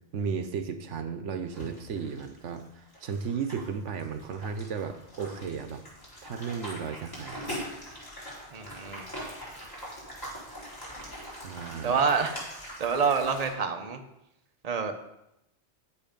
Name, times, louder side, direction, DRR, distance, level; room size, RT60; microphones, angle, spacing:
voice 1, 0.1-5.8 6.2-7.7 11.3-12.0, right 6 dB, 85° right, 8 dB, 1.1 m, -35 dB
sound 1, 1.5-13.5, equal, 20° left, 3.7 m, -42 dB
voice 2, 8.5-9.1 11.8-12.4 12.8-14.0 14.6-14.9, right 5 dB, 35° right, 5 dB, 1.0 m, -27 dB
9.7 x 7.2 x 5.2 m, 0.86 s
omnidirectional pair, 1.2 m